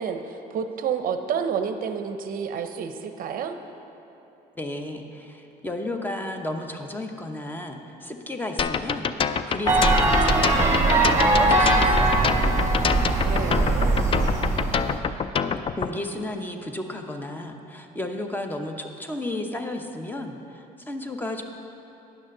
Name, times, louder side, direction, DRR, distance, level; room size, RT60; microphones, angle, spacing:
voice 1, 0.0-3.5 13.0-14.1, right 7 dB, 55° right, 7 dB, 0.6 m, -30 dB
voice 2, 4.6-12.3 15.7-21.4, left 1 dB, 10° left, 5 dB, 0.8 m, -33 dB
sound 1, 8.6-15.9, left 6 dB, 35° left, 0.4 m, -26 dB
sound 2, 9.7-15.0, right 2 dB, 15° right, 1.6 m, -21 dB
10.0 x 6.3 x 6.5 m, 2.9 s
cardioid pair, 110°, 17 cm